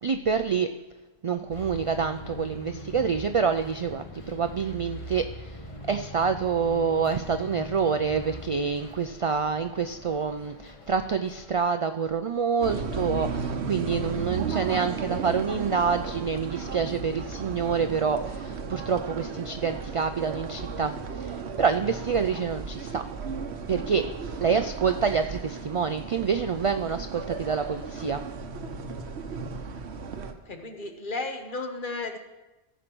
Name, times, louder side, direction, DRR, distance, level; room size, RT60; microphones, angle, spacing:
voice 1, 0.0-0.7 1.2-5.6 5.9-20.9 21.2-23.0 23.7-24.0 24.4-28.2, right 6 dB, 60° right, 8 dB, 0.3 m, -27 dB
Bus, 1.5-11.5, left 1 dB, 30° left, 1.1 m, -42 dB
sound 1, 12.6-30.3, right 5 dB, 80° right, 1.1 m, -35 dB
voice 2, 30.5-32.2, left 3 dB, 50° left, 5 dB, 1.2 m, -34 dB
14.5 x 5.1 x 6.0 m, 1.1 s
omnidirectional pair, 1.1 m